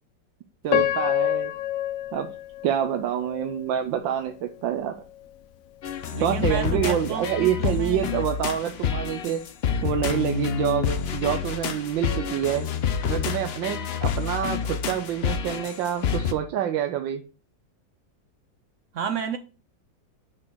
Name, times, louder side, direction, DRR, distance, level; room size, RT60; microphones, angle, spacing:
voice 1, 0.6-1.5 2.1-2.3 2.6-5.0 6.2-9.4 9.8-12.7 13.1-17.2, right 10 dB, 85° right, 1.4 m, -27 dB
Piano, 0.7-3.7 4.3-4.4 5.0-5.3, left 12 dB, 65° left, 0.8 m, -27 dB
sound 1, 5.8-16.3, left 7 dB, 85° left, 0.5 m, -28 dB
voice 2, 6.1-8.0 18.9-19.4, right 6 dB, 70° right, 0.7 m, -31 dB
6.1 x 6.1 x 4.6 m
omnidirectional pair, 2.0 m